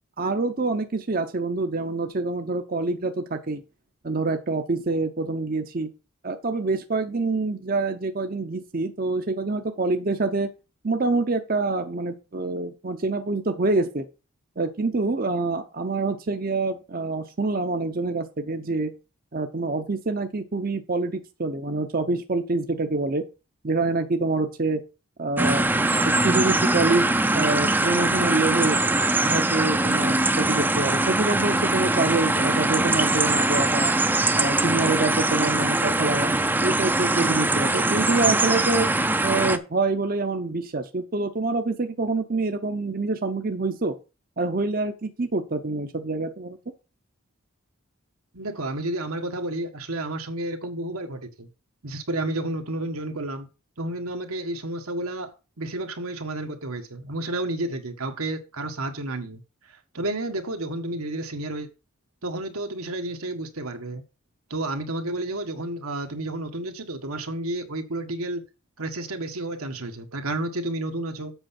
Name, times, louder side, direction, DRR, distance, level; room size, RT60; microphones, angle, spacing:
voice 1, 0.2-3.6 4.0-5.9 6.2-10.5 10.8-14.1 14.6-18.9 19.3-23.2 23.6-24.8 25.2-28.8 29.2-33.9 34.4-38.9 39.2-44.0 44.4-46.6, right 3 dB, 40° right, 0.7 m, -26 dB
sound 1, 25.4-39.6, right 2 dB, 10° right, 0.5 m, -22 dB
voice 2, 48.3-51.5 51.8-53.5 53.8-61.7 62.2-64.0 64.5-68.5 68.8-71.3, right 1 dB, 85° right, 1.5 m, -31 dB
8.0 x 5.5 x 5.8 m
head